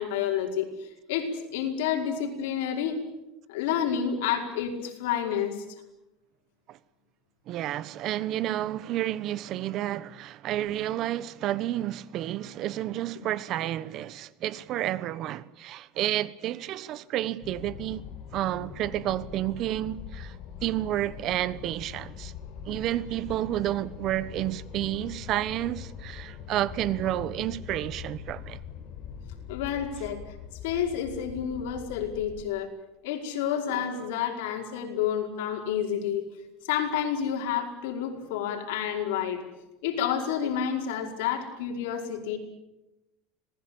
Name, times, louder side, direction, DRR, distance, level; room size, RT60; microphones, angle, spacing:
voice 1, 0.0-3.0 3.5-5.6 29.5-30.3 30.6-32.7 33.0-36.3 36.7-39.4 39.8-42.4, left 8 dB, 85° left, 5.3 m, -29 dB
voice 2, 7.5-18.0 18.3-22.3 22.7-28.6, right 13 dB, 50° right, 1.1 m, -30 dB
sound 1, 17.4-32.4, left 8 dB, 55° left, 4.2 m, -43 dB
26.5 x 20.0 x 8.8 m
supercardioid pair, 135°, 0 cm